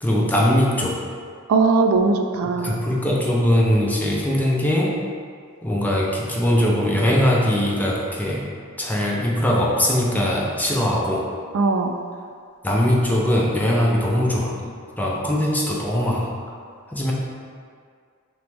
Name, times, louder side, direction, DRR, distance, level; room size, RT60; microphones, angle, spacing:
voice 1, 0.0-1.0 2.4-5.0 5.6-8.5 8.8-11.3 12.6-16.3 16.9-17.1, equal, 10° left, -3 dB, 0.5 m, -21 dB
voice 2, 1.5-2.8 11.5-12.0, right 4 dB, 75° right, 5 dB, 0.3 m, -19 dB
5.8 x 2.0 x 3.3 m, 2.1 s
head